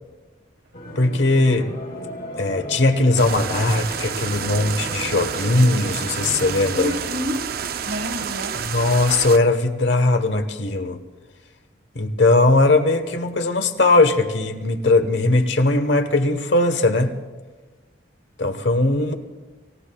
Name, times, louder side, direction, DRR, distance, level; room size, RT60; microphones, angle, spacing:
sound 1, 0.7-6.7, equal, 50° left, 2.6 m, -35 dB
voice 1, 1.0-1.7 2.4-7.0 8.6-11.0 11.9-17.1 18.4-19.1, left 2 dB, 70° left, 8 dB, 1.1 m, -19 dB
sound 2, 3.2-9.4, right 7 dB, 50° right, 0.5 m, -29 dB
voice 2, 6.7-7.5 7.8-8.6, equal, 75° right, 5 dB, 1.5 m, -28 dB
28.5 x 17.0 x 2.3 m, 1.3 s
head